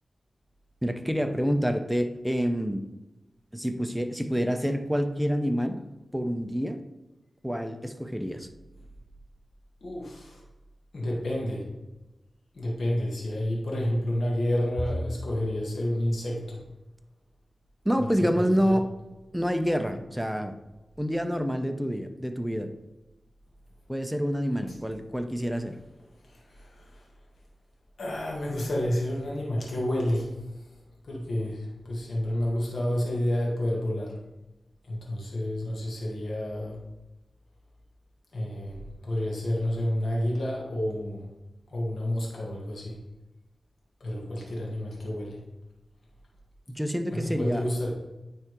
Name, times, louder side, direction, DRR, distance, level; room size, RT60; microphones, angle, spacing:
voice 1, 0.8-2.8 3.5-5.8 6.1-6.8 7.4-8.5 17.8-18.9 19.3-20.5 21.0-22.7 23.9-25.8 46.7-47.6, equal, 5° right, 7 dB, 0.6 m, -27 dB
voice 2, 9.8-10.4 10.9-11.7 12.5-16.6 18.0-18.1 18.3-18.7 24.6-24.8 26.2-27.1 28.0-30.7 31.0-34.2 34.9-36.8 38.3-41.3 41.7-43.0 44.0-45.4 47.1-47.9, left 1 dB, 80° left, -4 dB, 1.4 m, -30 dB
9.4 x 3.3 x 3.1 m, 1.0 s
cardioid pair, 45°, 0 cm